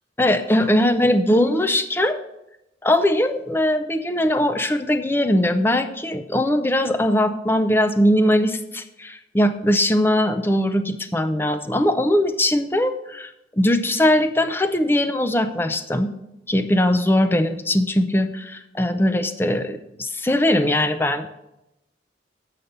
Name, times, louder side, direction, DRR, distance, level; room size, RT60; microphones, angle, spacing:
voice 1, 0.2-2.2 2.8-16.1 16.5-21.3, left 1 dB, 10° left, 9 dB, 0.5 m, -20 dB
8.0 x 5.7 x 6.6 m, 0.89 s
head